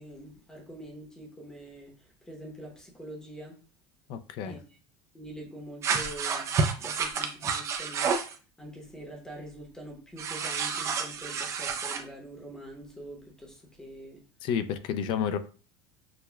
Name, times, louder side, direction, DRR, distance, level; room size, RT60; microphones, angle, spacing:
voice 1, 0.0-3.6 4.4-4.8 5.1-6.5 6.8-8.1 8.6-14.2, right 1 dB, 5° left, 0.8 m, -45 dB
voice 2, 4.1-4.6 14.4-15.4, left 8 dB, 40° left, 0.3 m, -30 dB
sound 1, 5.8-8.3 10.2-12.0, right 5 dB, 25° right, 0.4 m, -29 dB
6.1 x 2.2 x 2.2 m
cardioid pair, 170°, 12 cm